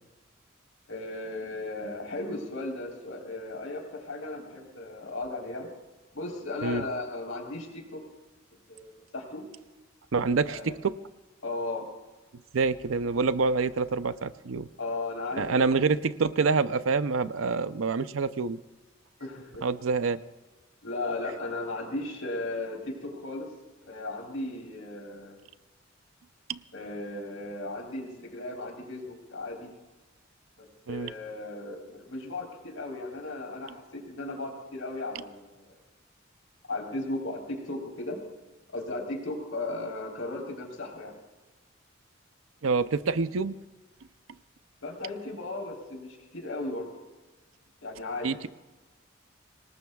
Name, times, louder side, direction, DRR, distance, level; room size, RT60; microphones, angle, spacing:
voice 1, 0.9-5.7 6.1-8.0 8.7-9.4 10.5-10.7 11.4-11.9 14.8-15.6 19.2-19.6 20.8-23.5 23.9-25.4 26.7-29.7 30.6-35.7 36.7-38.2 38.7-41.2 44.8-46.9 47.8-48.3, left 2 dB, 85° left, 1 dB, 3.9 m, -36 dB
voice 2, 10.1-10.9 12.5-14.7 15.4-18.6 19.6-20.2 26.5-26.6 30.9-31.1 42.6-43.6 48.2-48.5, right 4 dB, 85° right, 13 dB, 0.6 m, -26 dB
26.0 x 20.0 x 2.3 m, 1.2 s
head